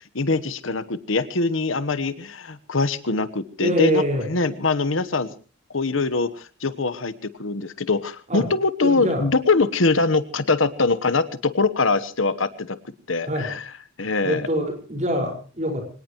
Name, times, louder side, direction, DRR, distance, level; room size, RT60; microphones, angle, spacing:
voice 1, 0.1-5.3 5.7-7.1 7.4-12.8 13.1-13.6 14.0-14.5, left 3 dB, 80° left, 13 dB, 1.2 m, -23 dB
voice 2, 3.6-4.3 8.3-8.5 8.8-9.2 13.3-13.5 14.2-15.8, equal, 35° right, 4 dB, 5.3 m, -24 dB
25.0 x 18.5 x 3.1 m, 0.37 s
head